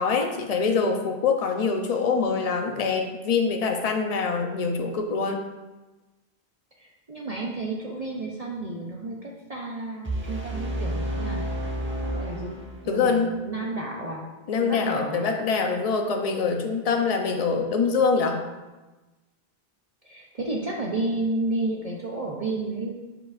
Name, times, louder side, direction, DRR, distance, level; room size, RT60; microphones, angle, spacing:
voice 1, 0.0-5.4 12.9-13.4 14.5-18.4, left 5 dB, 40° left, 3 dB, 0.7 m, -24 dB
voice 2, 6.8-11.5 12.1-12.6 12.8-14.2 14.6-15.3 20.0-22.9, right 2 dB, 40° right, -2 dB, 0.8 m, -31 dB
sound 1, 10.0-13.1, right 1 dB, 10° right, 1.0 m, -30 dB
10.5 x 4.9 x 2.5 m, 1.1 s
omnidirectional pair, 1.1 m